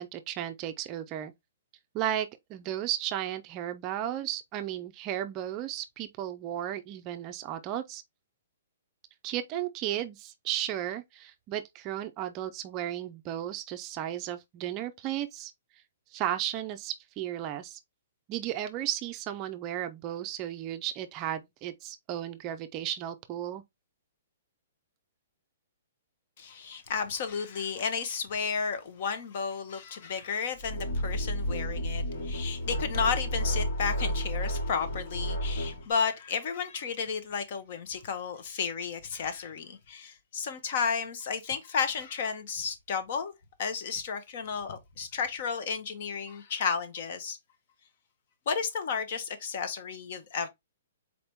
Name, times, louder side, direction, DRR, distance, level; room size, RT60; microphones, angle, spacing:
voice 1, 0.0-1.3 1.9-8.0 9.2-15.5 16.1-17.8 18.3-23.6, right 12 dB, 30° right, 0.4 m, -34 dB
voice 2, 26.4-43.3 43.6-47.4 48.5-50.5, left 6 dB, 50° left, 0.9 m, -33 dB
sound 1, 30.6-35.8, equal, 85° left, 2.9 m, -31 dB
4.2 x 2.9 x 3.4 m
hypercardioid pair, 150°, 0 cm